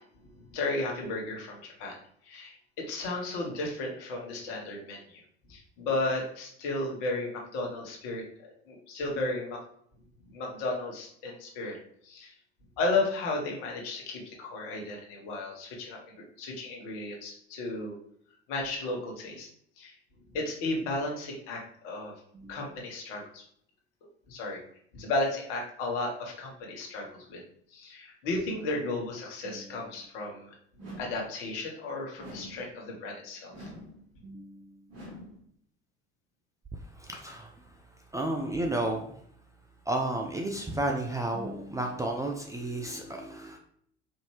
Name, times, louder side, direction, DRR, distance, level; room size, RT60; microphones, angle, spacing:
voice 1, 0.0-2.0 2.2-5.2 5.5-9.6 10.3-11.8 12.0-12.3 12.8-16.0 16.4-18.0 18.5-19.5 19.8-19.9 20.3-22.1 22.5-23.4 24.3-24.6 24.9-27.4 27.7-30.5 31.0-33.7, left 2 dB, 60° left, 0 dB, 1.2 m, -34 dB
sound 1, 30.8-31.3 32.2-32.7 33.5-34.0 34.9-35.4, equal, 50° right, 1.5 m, -45 dB
voice 2, 34.2-34.8 37.0-37.5 38.1-39.1 39.9-43.6, right 1 dB, 10° right, 2 dB, 0.4 m, -32 dB
4.4 x 2.8 x 3.1 m, 0.65 s
figure-of-eight pair, 70°, 32 cm